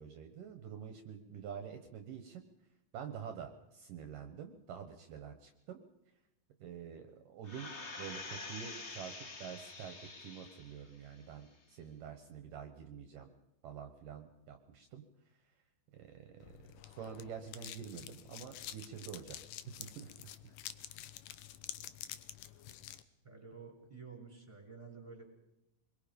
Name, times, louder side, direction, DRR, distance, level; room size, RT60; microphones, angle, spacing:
voice 1, 0.0-2.7 2.9-5.8 6.6-13.3 13.6-15.6 15.9-19.4 19.8-20.6, right 8 dB, 65° right, 7 dB, 2.7 m, -48 dB
sound 1, 7.4-10.8 11.3-11.4, left 3 dB, 55° left, 0.7 m, -47 dB
sound 2, 16.4-23.0, left 12 dB, 70° left, 2.4 m, -49 dB
voice 2, 23.2-25.3, right 5 dB, 10° right, 3 dB, 4.2 m, -51 dB
26.0 x 22.0 x 5.3 m, 0.87 s
omnidirectional pair, 4.4 m